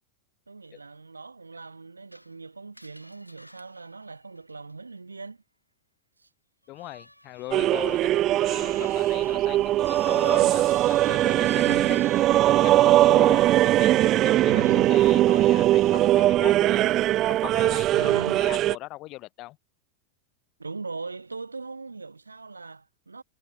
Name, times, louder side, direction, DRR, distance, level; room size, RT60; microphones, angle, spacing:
voice 1, 0.5-5.4 6.2-6.3 11.6-12.4 14.4-15.1 15.3-15.4 15.8-15.9 17.9-18.4 20.6-23.2, right 4 dB, 80° right, 6.8 m, -39 dB
Screech, 2.1-5.0 6.6-12.4, equal, 90° left, 3.4 m, -51 dB
voice 2, 6.7-12.0 12.4-16.9 17.3-19.6, left 19 dB, 40° left, 2.2 m, -40 dB
sound 1, 7.5-18.8, right 14 dB, 35° right, 0.5 m, -21 dB
figure-of-eight pair, 90°, 0 cm